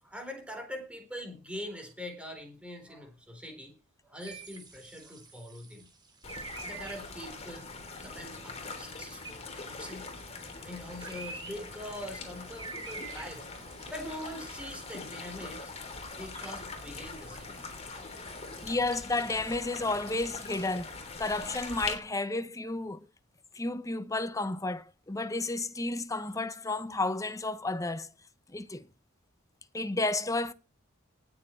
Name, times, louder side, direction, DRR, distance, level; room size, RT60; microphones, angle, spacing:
voice 1, 0.0-3.7 4.0-5.9 6.3-7.7 8.0-10.1 10.6-13.5 13.9-15.7 16.2-17.7, equal, 5° right, 4.0 m, -43 dB
sound 1, 4.2-20.2, right 3 dB, 20° right, 2.9 m, -50 dB
sound 2, 6.2-21.9, left 3 dB, 30° left, 3.3 m, -42 dB
voice 2, 18.6-23.0 23.5-28.1 28.5-28.9 29.7-30.5, left 2 dB, 15° left, 0.9 m, -32 dB
19.0 x 7.7 x 4.5 m
head